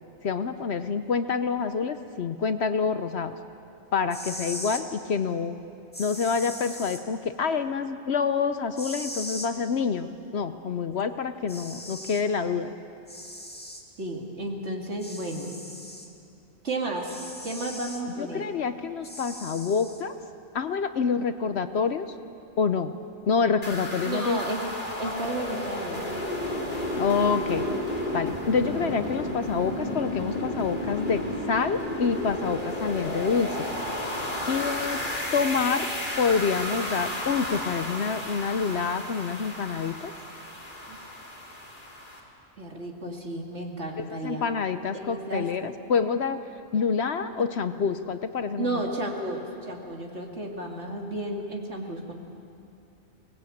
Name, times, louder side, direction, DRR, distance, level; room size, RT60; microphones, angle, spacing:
voice 1, 0.2-3.4 3.9-5.6 6.0-12.7 18.2-20.2 20.5-22.1 22.6-22.9 23.3-24.4 25.0-25.2 27.0-27.6 28.1-31.2 31.5-33.5 34.1-35.0 35.3-35.9 36.2-40.1 44.0-46.4 46.7-48.8, left 5 dB, 60° left, 10 dB, 0.9 m, -27 dB
sound 1, 4.0-4.8 5.9-7.0 8.8-9.5 11.0-11.1 11.5-12.2 13.1-13.8 15.0-16.1 17.0-18.0 19.0-20.0, left 1 dB, 5° left, 1.9 m, -39 dB
voice 2, 14.0-15.6 16.6-18.5 24.0-24.7 25.0-26.1 40.9-41.0 42.6-44.5 44.9-45.5 48.6-52.1, right 1 dB, 55° right, 1 dB, 2.7 m, -33 dB
sound 2, 23.6-42.2, left 1 dB, 35° left, 3.2 m, -32 dB
sound 3, 27.0-33.0, left 1 dB, 25° right, 3.2 m, -47 dB
24.5 x 19.0 x 8.5 m, 2.7 s
omnidirectional pair, 1.4 m